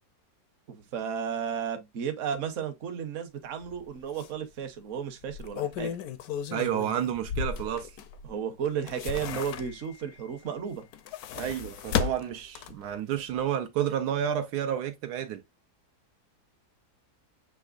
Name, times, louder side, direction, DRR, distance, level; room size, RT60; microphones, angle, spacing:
voice 1, 0.7-6.0 8.2-10.8, right 7 dB, 55° right, 1.1 m, -33 dB
sound 1, 3.6-3.8 4.2-4.3 5.2-8.3 8.7-10.0 10.8-12.9 13.3-13.4, left 8 dB, 75° left, 1.1 m, -34 dB
voice 2, 6.5-8.0 11.3-15.4, right 10 dB, 80° right, 1.1 m, -30 dB
7.0 x 3.0 x 2.4 m
omnidirectional pair, 1.8 m